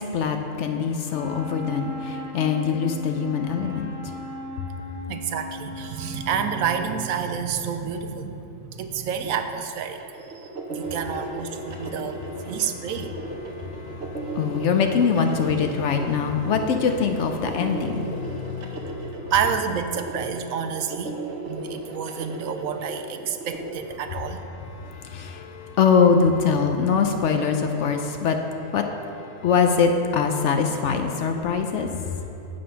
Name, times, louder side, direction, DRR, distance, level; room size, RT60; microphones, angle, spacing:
voice 1, 0.0-4.3 10.9-11.0 11.7-11.9 12.4-12.8 13.4-19.3 24.5-32.3, left 6 dB, 65° left, 5 dB, 0.8 m, -24 dB
Wind instrument woodwind instrument, 1.1-7.2, left 1 dB, 45° left, 1.8 m, -37 dB
voice 2, 5.1-10.0 10.3-12.2 12.5-13.1 19.3-21.1 21.5-24.4, right 7 dB, 75° right, 7 dB, 1.0 m, -29 dB
sound 1, 10.0-23.7, right 2 dB, 55° right, 1.2 m, -35 dB
9.3 x 5.1 x 5.6 m, 2.8 s
omnidirectional pair, 1.5 m